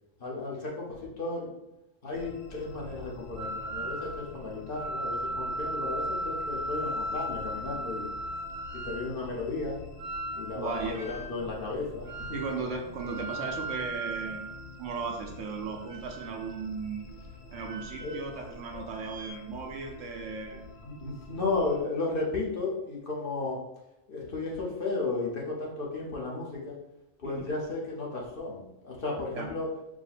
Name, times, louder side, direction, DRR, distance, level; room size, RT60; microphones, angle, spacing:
voice 1, 0.2-1.5 2.0-8.1 8.8-9.8 10.3-12.4 18.0-18.2 18.7-18.9 20.8-23.6 24.1-26.8 27.2-29.7, left 3 dB, 50° left, -3 dB, 1.0 m, -34 dB
sound 1, 2.1-21.8, left 3 dB, 65° left, 0.4 m, -47 dB
sound 2, 3.4-4.3 4.7-9.1 10.0-11.4 12.0-12.6 12.9-15.2 15.8-16.6 17.5-18.6 18.9-19.3, right 1 dB, 50° right, 0.6 m, -37 dB
voice 2, 10.5-11.0 12.3-14.4 14.8-17.1 17.5-20.6 27.2-27.5 29.3-29.5, right 4 dB, 75° right, 2 dB, 1.0 m, -36 dB
4.7 x 2.1 x 4.1 m, 0.91 s
omnidirectional pair, 1.3 m